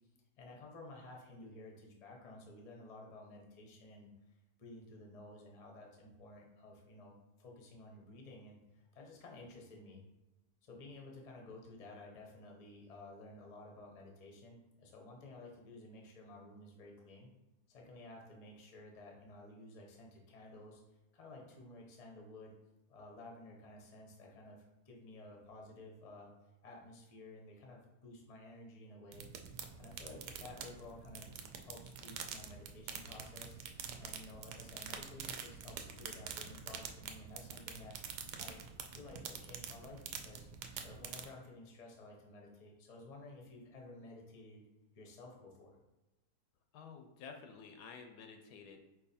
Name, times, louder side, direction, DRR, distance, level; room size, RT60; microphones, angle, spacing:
voice 1, 0.4-4.1 4.6-10.0 10.6-17.3 17.7-20.8 21.1-22.5 22.9-26.3 26.6-29.3 29.8-31.3 31.6-33.6 34.0-38.0 38.4-40.5 40.8-44.7 44.9-45.8, left 2 dB, 35° left, 0 dB, 0.6 m, -53 dB
sound 1, 29.1-41.3, right 7 dB, 75° right, 1.1 m, -47 dB
voice 2, 46.7-48.8, left 5 dB, 75° left, 5 dB, 1.1 m, -51 dB
4.6 x 2.8 x 4.1 m, 1.0 s
omnidirectional pair, 1.9 m